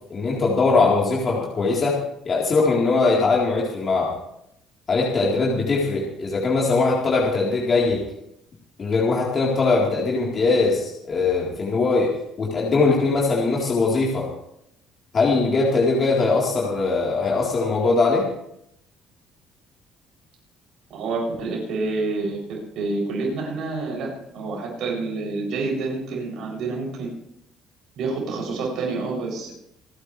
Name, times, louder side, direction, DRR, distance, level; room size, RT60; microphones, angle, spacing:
voice 1, 0.1-2.0 2.3-4.1 4.9-8.0 8.8-12.1 12.4-14.3 15.1-18.3, left 3 dB, 40° left, -5 dB, 4.2 m, -21 dB
voice 2, 20.9-27.1 28.0-29.5, right 3 dB, 70° right, -2 dB, 7.8 m, -28 dB
28.5 x 11.5 x 3.5 m, 0.77 s
cardioid pair, 100°, 0 cm